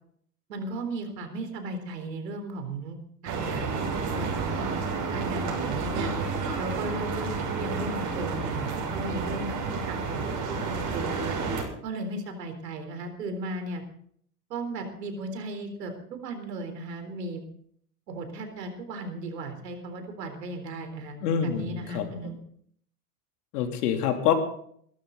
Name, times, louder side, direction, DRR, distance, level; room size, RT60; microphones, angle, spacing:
voice 1, 0.5-3.0 3.2-4.7 5.1-6.1 6.6-7.3 7.6-11.4 11.8-13.8 14.5-17.4 18.1-22.4, right 2 dB, 85° right, 6 dB, 4.0 m, -36 dB
sound 1, 3.3-11.6, right 4 dB, 40° right, 6.5 m, -30 dB
voice 2, 21.2-22.3 23.5-24.3, left 9 dB, 75° left, 4 dB, 3.2 m, -26 dB
22.5 x 12.5 x 4.0 m, 0.62 s
hypercardioid pair, 105°, 47 cm